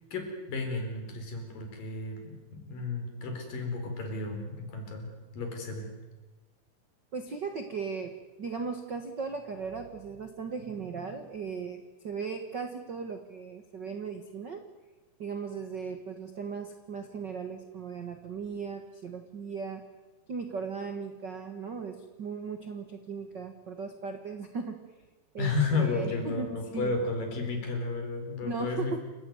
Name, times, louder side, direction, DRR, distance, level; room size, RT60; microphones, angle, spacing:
voice 1, 0.1-5.9 25.4-29.0, left 3 dB, 55° left, 4 dB, 5.8 m, -32 dB
voice 2, 7.1-8.1 8.4-14.6 15.2-19.8 20.3-24.8 25.3-27.0 28.4-29.0, right 5 dB, 65° right, 6 dB, 1.0 m, -37 dB
28.5 x 16.0 x 9.5 m, 1.2 s
omnidirectional pair, 4.7 m